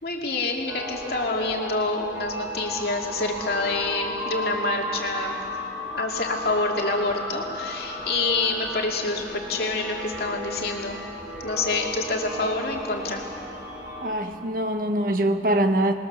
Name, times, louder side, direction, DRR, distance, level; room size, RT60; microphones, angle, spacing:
voice 1, 0.0-5.4 5.9-11.0 11.4-13.2, left 3 dB, 60° left, 0 dB, 2.6 m, -27 dB
sound 1, 0.7-14.1, equal, 10° right, 5.2 m, -34 dB
voice 2, 14.0-15.9, right 1 dB, 50° right, 6 dB, 1.5 m, -23 dB
27.0 x 20.5 x 7.0 m, 2.6 s
head